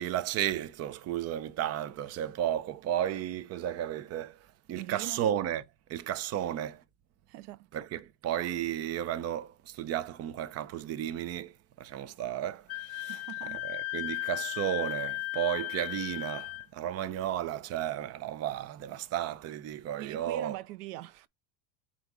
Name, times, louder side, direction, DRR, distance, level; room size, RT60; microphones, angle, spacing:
voice 1, 0.0-5.6 5.9-6.8 7.7-20.6, right 11 dB, 35° right, 0.7 m, -33 dB
voice 2, 4.7-5.2 7.3-7.7 13.1-13.6 20.0-21.3, right 17 dB, 85° right, 0.7 m, -42 dB
Wind instrument woodwind instrument, 12.7-16.7, left 21 dB, 45° left, 0.7 m, -36 dB
8.0 x 3.1 x 4.7 m
supercardioid pair, 135°, 46 cm